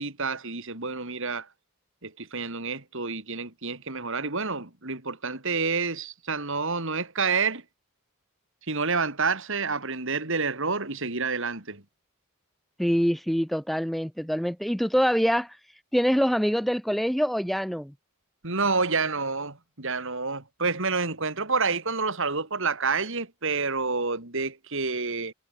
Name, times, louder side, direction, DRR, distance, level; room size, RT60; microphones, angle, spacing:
voice 1, 0.0-1.5 2.0-7.6 8.7-11.8 18.4-25.3, right 4 dB, 65° right, 3.9 m, -28 dB
voice 2, 12.8-15.6 15.9-17.9, equal, ahead, 0.6 m, -25 dB
head